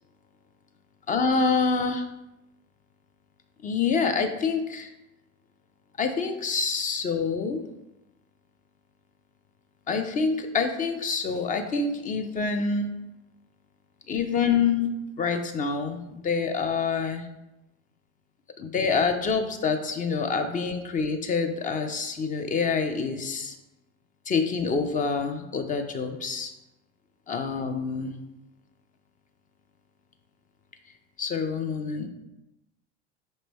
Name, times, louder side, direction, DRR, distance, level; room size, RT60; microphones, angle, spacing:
voice 1, 1.1-2.1 3.6-4.9 6.0-7.6 9.9-12.9 14.1-14.9 15.2-17.3 18.6-23.5 24.3-26.5 27.3-28.2 31.2-32.1, left 5 dB, 25° left, 7 dB, 0.5 m, -26 dB
5.3 x 3.2 x 3.0 m, 0.93 s
hypercardioid pair, 100°, 34 cm